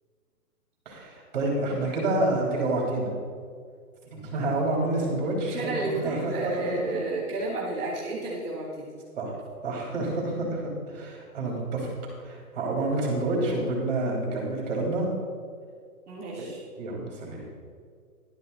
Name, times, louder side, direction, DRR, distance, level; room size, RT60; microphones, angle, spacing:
voice 1, 0.8-3.1 4.1-6.4 9.2-9.4 9.6-11.9 12.2-15.1 16.4-16.5 16.8-17.4, right 2 dB, 30° right, -2 dB, 3.2 m, -28 dB
voice 2, 5.4-9.0 16.1-16.6, right 2 dB, 10° right, -14 dB, 1.6 m, -32 dB
11.5 x 9.6 x 4.0 m, 2.1 s
hypercardioid pair, 170°, 45 cm